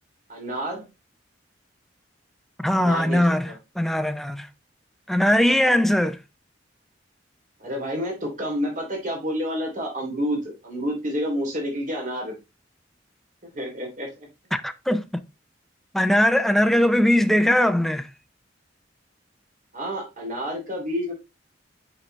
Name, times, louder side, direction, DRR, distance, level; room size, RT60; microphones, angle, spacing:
voice 1, 0.3-0.8 2.7-3.6 7.6-12.3 13.5-14.3 19.7-21.1, equal, 45° right, 3.1 m, -29 dB
voice 2, 2.6-4.5 5.1-6.2 14.5-15.2 15.9-18.1, left 1 dB, ahead, 0.5 m, -20 dB
6.4 x 6.0 x 3.3 m
head